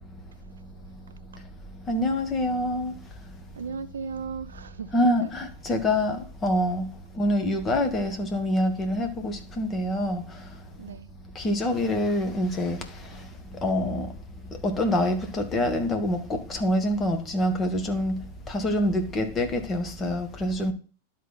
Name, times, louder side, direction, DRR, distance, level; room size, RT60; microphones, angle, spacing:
voice 1, 1.9-2.9 4.9-10.5 11.3-14.1 14.5-20.7, left 1 dB, 20° left, 1.5 m, -26 dB
voice 2, 3.6-5.3 10.8-11.1, right 5 dB, 70° right, 0.5 m, -36 dB
12.0 x 4.1 x 4.0 m
figure-of-eight pair, 90°, 0 cm